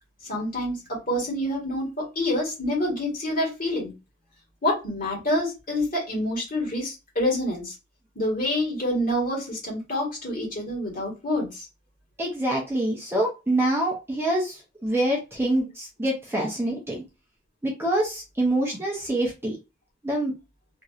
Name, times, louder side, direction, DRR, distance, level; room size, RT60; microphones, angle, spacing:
voice 1, 0.2-3.9 4.6-7.7 8.2-11.7, left 1 dB, 45° left, -2 dB, 1.7 m, -27 dB
voice 2, 12.2-17.0 17.6-19.6 20.0-20.4, right 1 dB, 10° right, -2 dB, 0.7 m, -26 dB
3.0 x 2.8 x 2.4 m, 0.27 s
head